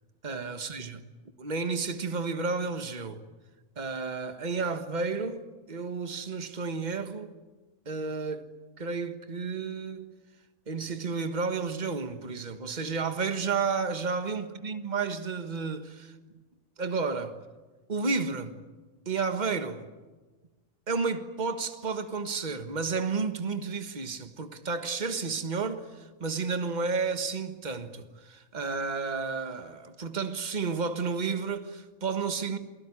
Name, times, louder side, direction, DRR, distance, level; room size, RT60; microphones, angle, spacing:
voice 1, 0.2-1.0 1.4-3.2 3.8-5.4 5.7-7.3 7.8-8.5 8.8-10.1 10.7-16.1 16.8-17.4 17.9-18.5 19.0-19.8 20.9-32.6, right 4 dB, 35° right, 1.6 m, -31 dB
28.5 x 18.5 x 10.0 m
omnidirectional pair, 1.4 m